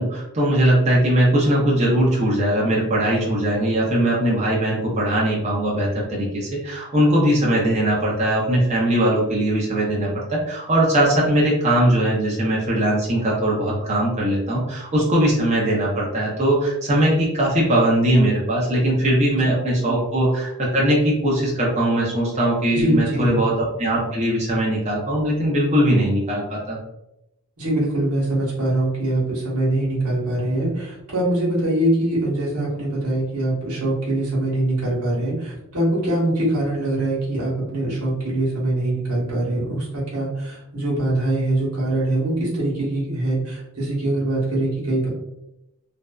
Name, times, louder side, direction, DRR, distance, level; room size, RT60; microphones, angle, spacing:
voice 1, 0.0-26.8, right 1 dB, 30° right, -5 dB, 0.6 m, -20 dB
voice 2, 22.7-23.3 27.6-45.1, right 1 dB, 85° right, -6 dB, 1.1 m, -23 dB
2.6 x 2.1 x 2.2 m, 0.89 s
head